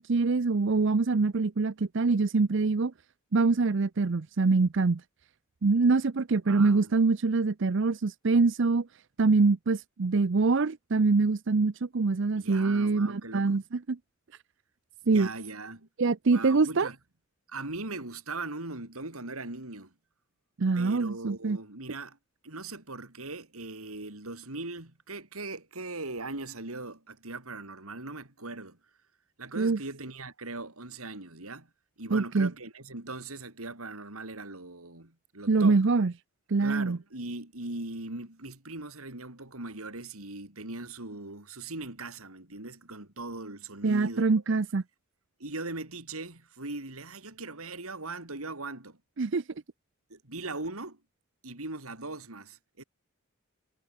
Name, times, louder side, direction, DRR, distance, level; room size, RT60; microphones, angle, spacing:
voice 1, 0.0-2.9 3.3-5.0 5.6-8.9 9.2-13.6 13.9-14.0 15.1-15.3 16.0-16.9 20.6-21.6 29.6-29.8 32.1-32.5 35.5-36.1 36.5-37.0 43.8-44.8 49.2-49.4, right 4 dB, 55° right, 0.6 m, -24 dB
voice 2, 6.5-6.9 12.4-13.6 15.0-15.9 16.3-17.0 17.5-19.9 20.7-22.2 22.4-28.8 29.4-31.7 32.0-35.8 36.6-44.4 45.4-49.0 50.1-51.0 51.4-52.8, right 2 dB, 80° right, 4.2 m, -40 dB
head